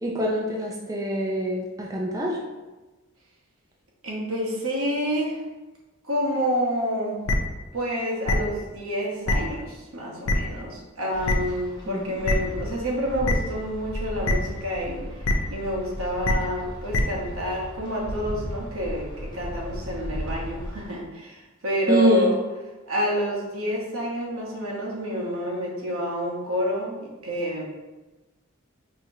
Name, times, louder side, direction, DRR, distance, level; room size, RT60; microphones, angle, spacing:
voice 1, 0.0-2.4 11.9-12.1 21.9-22.3, right 1 dB, 15° right, -3 dB, 0.5 m, -25 dB
voice 2, 4.0-5.4 6.0-7.2 7.7-22.4 22.9-27.0 27.2-27.6, equal, 85° right, -3 dB, 1.1 m, -28 dB
sound 1, 7.3-7.4 8.3-8.4 9.3-9.4 10.3-10.4 11.2-11.3 12.2-12.3 13.2-13.3 14.2-14.3 15.2-15.3 16.2-16.3 16.9-17.0, left 2 dB, 75° left, 0.5 m, -22 dB
Wind, 11.1-20.9, equal, 20° left, 1.0 m, -36 dB
4.8 x 2.8 x 2.7 m, 1.1 s
head